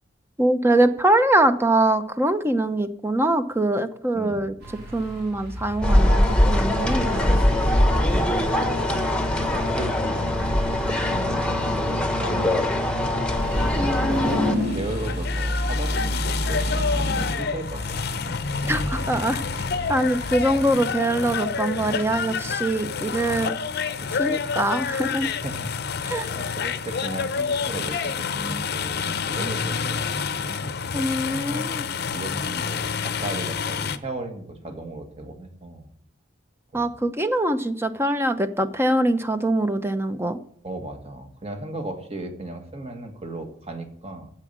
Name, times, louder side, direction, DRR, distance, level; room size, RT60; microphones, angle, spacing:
voice 1, 0.4-4.6 4.9-7.4 13.7-14.7 18.6-19.4 19.9-23.5 24.2-25.3 26.0-26.3 30.9-31.8 36.7-40.4, right 1 dB, 15° right, 10 dB, 0.8 m, -23 dB
voice 2, 4.1-4.5 8.0-13.1 13.6-18.0 19.6-20.0 24.0-24.5 25.3-25.7 26.3-31.0 32.1-35.9 36.7-36.8 40.6-44.3, right 2 dB, 35° right, 5 dB, 1.9 m, -36 dB
sound 1, 4.6-20.7, equal, 60° right, 3.1 m, -31 dB
sound 2, 5.8-14.6, left 1 dB, 5° left, 1.2 m, -22 dB
sound 3, 14.4-34.0, left 5 dB, 55° left, 0.7 m, -28 dB
9.8 x 8.1 x 7.5 m, 0.64 s
head